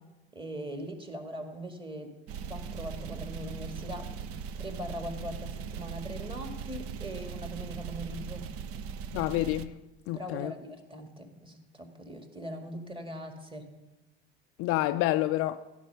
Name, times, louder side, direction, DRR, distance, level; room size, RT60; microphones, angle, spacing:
voice 1, 0.3-2.1 2.5-4.0 4.6-8.5 10.1-13.7, equal, 15° right, 2.0 m, -41 dB
sound 1, 2.3-9.7, right 6 dB, 45° right, 0.7 m, -39 dB
voice 2, 9.1-9.7 10.1-10.5 14.6-15.6, left 16 dB, 45° left, 0.5 m, -28 dB
15.0 x 5.5 x 6.8 m
figure-of-eight pair, 70°, 32 cm